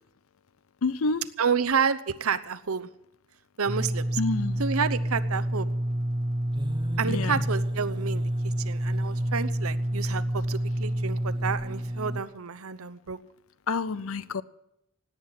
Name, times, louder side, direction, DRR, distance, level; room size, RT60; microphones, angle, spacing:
voice 1, 0.8-1.2 4.2-4.6 7.1-7.4 13.7-14.4, left 3 dB, 70° left, 0.6 m, -28 dB
voice 2, 1.4-2.9 3.6-4.2 4.6-5.7 7.0-13.2, right 6 dB, 85° right, 0.9 m, -29 dB
sound 1, 3.7-12.2, right 1 dB, 20° right, 0.9 m, -28 dB
17.5 x 9.6 x 7.4 m
head